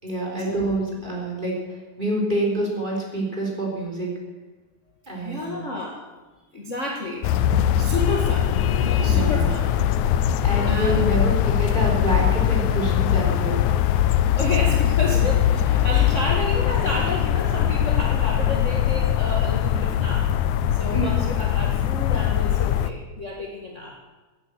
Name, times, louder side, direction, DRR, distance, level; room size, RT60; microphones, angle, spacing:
voice 1, 0.0-4.1 5.1-5.6 9.0-9.5 10.4-13.6 15.1-15.2 15.9-16.1 20.9-21.3, right 1 dB, 15° right, -2 dB, 3.8 m, -27 dB
voice 2, 5.0-6.0 6.5-9.6 10.7-11.3 14.3-20.3 20.7-24.0, left 2 dB, 35° left, -1 dB, 1.2 m, -31 dB
sound 1, 7.2-22.9, left 10 dB, 80° left, 1.8 m, -21 dB
17.5 x 9.7 x 8.1 m, 1.3 s
omnidirectional pair, 4.2 m